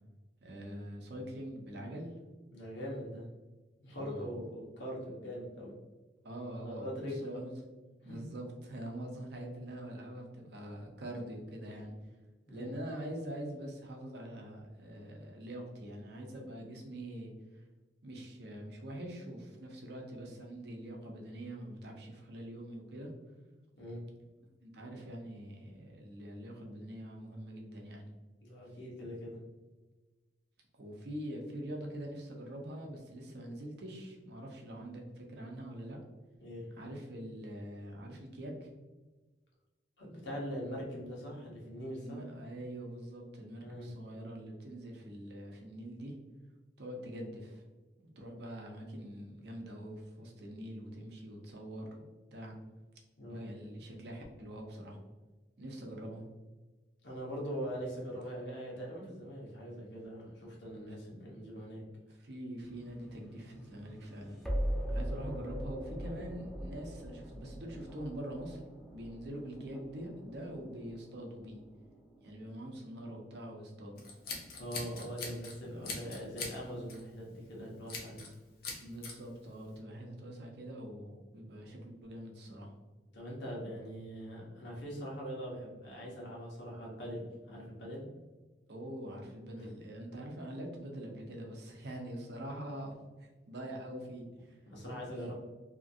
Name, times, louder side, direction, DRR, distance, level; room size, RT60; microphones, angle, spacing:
voice 1, 0.4-2.1 3.9-4.4 6.2-7.6 8.0-11.9 12.5-17.3 18.0-23.1 24.6-28.0 30.8-36.0 36.8-38.7 41.9-46.1 46.8-47.6 48.2-52.6 53.3-55.0 55.6-56.3 60.9-61.0 62.2-64.4 64.9-68.6 68.9-71.6 72.2-74.0 75.7-76.0 78.8-82.7 88.7-94.6, right 1 dB, 65° right, 1 dB, 0.7 m, -44 dB
voice 2, 2.5-3.3 3.8-5.8 6.6-7.4 8.0-8.2 12.5-12.7 23.7-24.0 28.4-29.4 36.4-36.7 40.0-42.2 43.6-43.9 53.2-53.5 57.0-61.8 74.6-78.2 83.1-88.0 89.5-89.7 94.7-95.3, equal, 85° left, -3 dB, 1.0 m, -42 dB
sound 1, 62.6-73.6, equal, ahead, 0.4 m, -41 dB
Scissors, 74.0-75.5 75.8-76.6 76.9-77.1 77.9-78.3 78.6-79.1, left 3 dB, 60° left, 0.7 m, -41 dB
2.8 x 2.5 x 2.6 m, 1.2 s
head